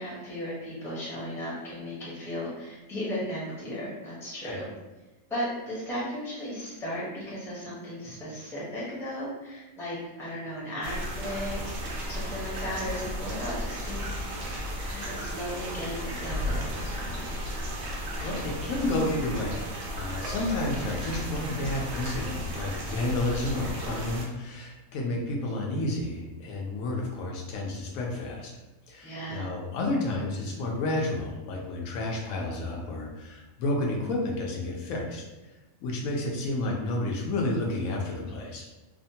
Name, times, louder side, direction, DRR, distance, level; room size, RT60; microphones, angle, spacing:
voice 1, 0.0-4.7 5.3-14.3 14.9-17.3 29.0-29.5, equal, 5° left, -7 dB, 0.6 m, -36 dB
sound 1, 10.8-24.3, equal, 65° right, 0.8 m, -34 dB
voice 2, 18.2-28.5 28.9-35.2 35.8-38.7, left 2 dB, 85° left, -1 dB, 1.0 m, -31 dB
2.8 x 2.1 x 2.7 m, 1.1 s
omnidirectional pair, 1.4 m